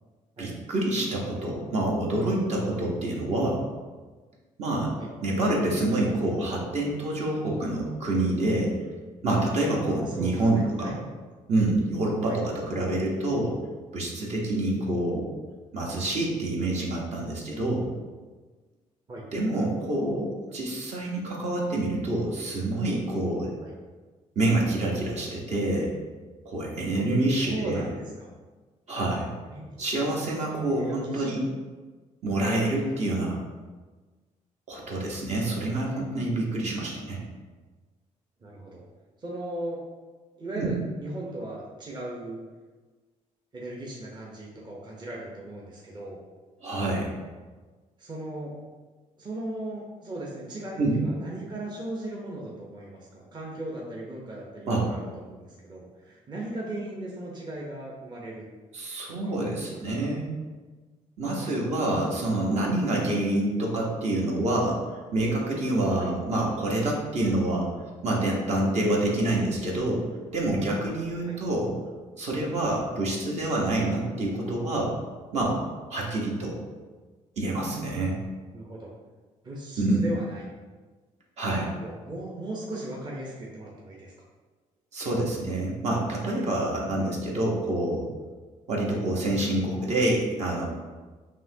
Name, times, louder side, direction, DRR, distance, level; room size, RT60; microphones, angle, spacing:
voice 1, 0.4-3.6 4.6-4.9 5.2-8.7 9.2-10.9 11.5-13.6 13.9-15.3 15.7-17.9 19.3-23.5 24.4-25.9 26.4-27.8 28.9-29.3 29.8-31.4 32.2-33.4 34.7-37.2 40.6-40.7 46.6-47.1 50.8-51.0 54.7-54.8 58.7-60.3 61.2-64.8 65.1-67.7 68.0-70.0 70.3-71.7 72.2-75.0 75.3-75.6 75.9-76.6 77.4-78.2 79.8-80.1 81.4-81.7 84.9-88.1 88.7-90.7, right 1 dB, 55° right, -2 dB, 1.0 m, -27 dB
voice 2, 9.9-11.0 12.3-12.4 19.1-19.2 23.6-23.7 26.9-27.0 27.4-28.3 29.5-29.8 30.7-31.3 32.9-33.0 38.4-38.8 39.2-39.8 40.4-42.4 43.5-46.2 48.0-48.5 49.2-58.5 59.1-59.6 61.3-61.6 66.0-66.1 71.3-71.4 78.5-78.9 79.4-80.5 81.7-84.1 87.0-87.1 88.9-89.0, right 1 dB, 35° right, -3 dB, 0.8 m, -37 dB
5.4 x 3.0 x 2.7 m, 1.3 s
cardioid pair, 100°, 14 cm